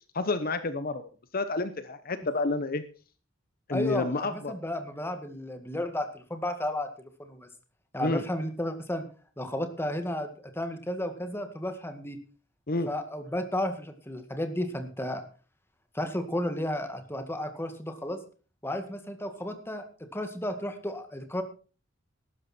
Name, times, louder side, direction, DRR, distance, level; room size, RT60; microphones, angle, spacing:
voice 1, 0.1-1.0 1.3-2.8 3.7-4.5 8.0-8.2 12.7-12.9, left 3 dB, 50° left, 11 dB, 1.0 m, -29 dB
voice 2, 3.7-7.5 7.9-9.0 9.4-12.2 12.9-15.2 15.9-18.2 18.6-19.8 20.1-21.4, left 1 dB, 10° left, 7 dB, 1.9 m, -33 dB
14.5 x 12.5 x 4.4 m, 0.38 s
head